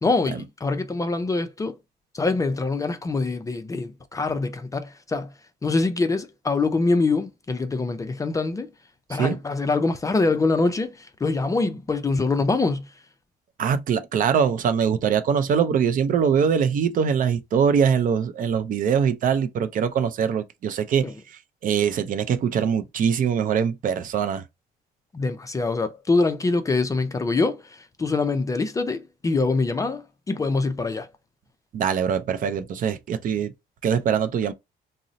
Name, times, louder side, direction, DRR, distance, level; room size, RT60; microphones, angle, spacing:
voice 1, 0.0-1.8 2.1-5.3 5.6-8.7 9.1-12.9 21.0-21.1 25.1-31.1, left 3 dB, 20° left, 0.3 m, -24 dB
voice 2, 13.6-24.4 31.7-33.5 33.8-34.5, right 7 dB, 55° right, 0.4 m, -23 dB
2.5 x 2.0 x 3.9 m
cardioid pair, 120°, 17 cm